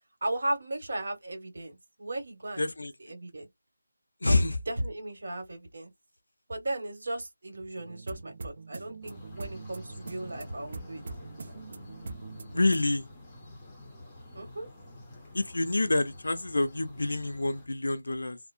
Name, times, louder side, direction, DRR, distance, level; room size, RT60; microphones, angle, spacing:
voice 1, 0.2-2.6 3.0-3.5 4.2-5.9 6.5-11.0 14.3-14.7, right 1 dB, 60° right, 1.5 m, -36 dB
voice 2, 2.6-2.9 4.2-4.6 10.0-10.2 12.5-13.1 15.3-18.4, left 2 dB, 80° left, 0.6 m, -27 dB
sound 1, 7.8-12.9, right 3 dB, 40° right, 0.6 m, -43 dB
sound 2, 9.0-17.7, left 1 dB, 10° left, 0.7 m, -49 dB
2.8 x 2.0 x 2.5 m
figure-of-eight pair, 170°, 0 cm